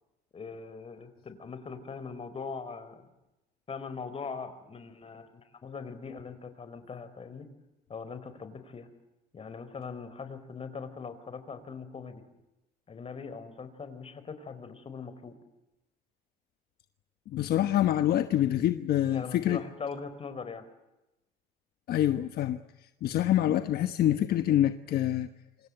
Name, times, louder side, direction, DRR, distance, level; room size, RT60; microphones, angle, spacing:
voice 1, 0.3-3.1 3.7-7.5 7.9-8.9 9.3-12.2 12.9-15.3 19.1-20.6, left 5 dB, 35° left, 4.8 m, -41 dB
voice 2, 17.3-19.6 21.9-22.6 23.0-25.3, left 12 dB, 65° left, 1.2 m, -26 dB
27.0 x 26.0 x 8.0 m
cardioid pair, 110°, 17 cm